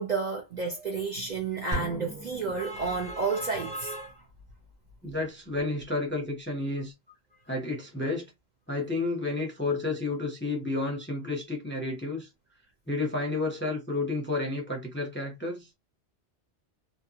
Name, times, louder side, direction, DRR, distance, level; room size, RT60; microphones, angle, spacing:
voice 1, 0.0-4.2, right 4 dB, 50° right, 0.6 m, -31 dB
sound 1, 1.7-3.4, right 1 dB, 25° right, 0.9 m, -37 dB
voice 2, 5.0-6.9 7.5-8.3 8.7-12.3 12.9-15.7, left 2 dB, 15° left, 0.5 m, -31 dB
2.5 x 2.2 x 2.7 m
omnidirectional pair, 1.2 m